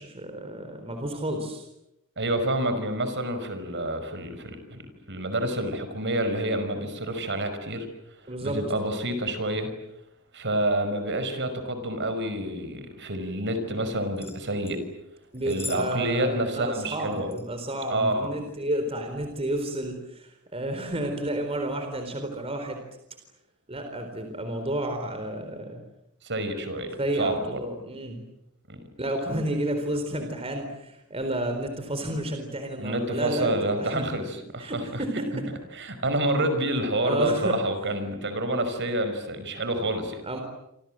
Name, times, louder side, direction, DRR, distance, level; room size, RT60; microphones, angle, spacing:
voice 1, 0.0-1.6 8.3-8.6 15.3-22.8 23.7-25.8 27.0-28.2 29.0-34.1 34.6-35.5 37.0-37.6 40.2-40.4, right 1 dB, 25° right, 5 dB, 4.1 m, -31 dB
voice 2, 2.2-7.9 8.4-9.7 10.3-14.8 15.5-17.3 17.9-18.3 26.2-27.6 28.7-28.8 32.8-35.0 35.7-40.2, right 1 dB, 55° right, 9 dB, 5.5 m, -28 dB
sound 1, 14.2-14.8 15.3-15.9 16.1-16.2 16.8-17.5 18.3-18.6 19.1-19.3, left 4 dB, 10° left, 6.2 m, -41 dB
28.5 x 27.0 x 7.7 m, 0.85 s
head